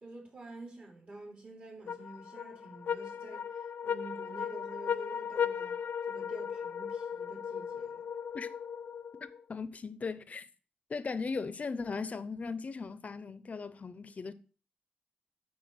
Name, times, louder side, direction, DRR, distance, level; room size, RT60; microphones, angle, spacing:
voice 1, 0.0-5.8 6.1-8.0, right 2 dB, 45° right, 3.4 m, -48 dB
sound 1, 1.9-9.4, left 7 dB, 80° left, 0.4 m, -37 dB
voice 2, 9.2-10.5 10.9-14.3, left 4 dB, 45° left, 0.7 m, -38 dB
9.3 x 4.6 x 6.2 m
wide cardioid pair, 125°, 3 cm